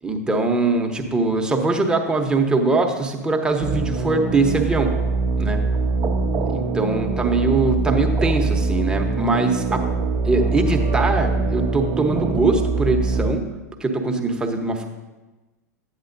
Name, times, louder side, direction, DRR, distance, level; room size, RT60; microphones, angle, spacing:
voice 1, 0.0-5.0 5.4-5.6 6.5-9.9 10.2-13.4 13.8-14.9, right 3 dB, 10° right, 3 dB, 1.0 m, -22 dB
sound 1, 3.6-13.3, right 3 dB, 30° right, 0.7 m, -23 dB
11.0 x 8.8 x 2.6 m, 1.1 s
figure-of-eight pair, 95°, 9 cm